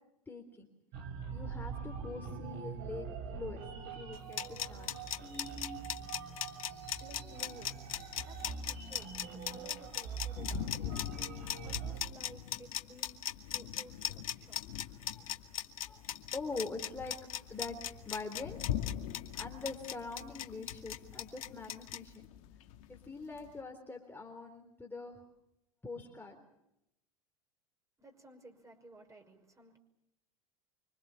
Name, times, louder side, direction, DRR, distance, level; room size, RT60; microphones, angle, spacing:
voice 1, 0.3-0.7 1.3-3.6 3.9-5.0 15.0-15.3 15.6-18.6 19.3-22.1 22.9-25.2 25.8-26.4, left 3 dB, 10° left, 3.8 m, -44 dB
sound 1, 0.9-12.0, right 6 dB, 55° right, 5.9 m, -43 dB
sound 2, 4.1-22.0, left 11 dB, 80° left, 1.6 m, -38 dB
sound 3, 4.6-23.6, left 11 dB, 65° left, 2.3 m, -46 dB
voice 2, 6.7-15.5 28.0-29.8, right 2 dB, 15° right, 5.8 m, -56 dB
26.0 x 25.5 x 7.1 m
hypercardioid pair, 85°, 18 cm